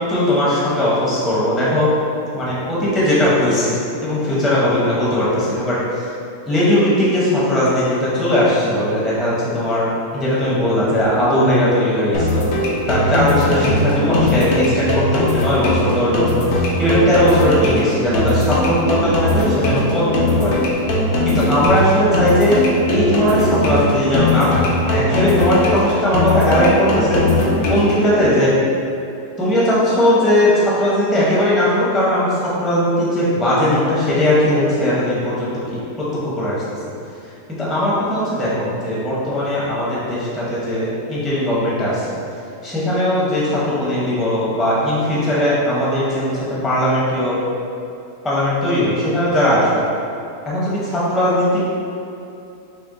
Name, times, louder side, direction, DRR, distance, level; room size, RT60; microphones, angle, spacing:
voice 1, 0.1-1.9 2.3-6.1 6.5-12.5 12.9-20.6 21.2-22.6 22.9-27.2 27.7-28.5 29.4-35.8 36.2-36.5 37.6-42.1 42.6-46.3 46.6-47.4 48.2-49.8 50.5-51.6, left 1 dB, ahead, -8 dB, 0.6 m, -18 dB
sound 1, 12.1-28.1, left 1 dB, 80° left, 1.2 m, -19 dB
5.7 x 2.2 x 3.7 m, 2.7 s
omnidirectional pair, 1.6 m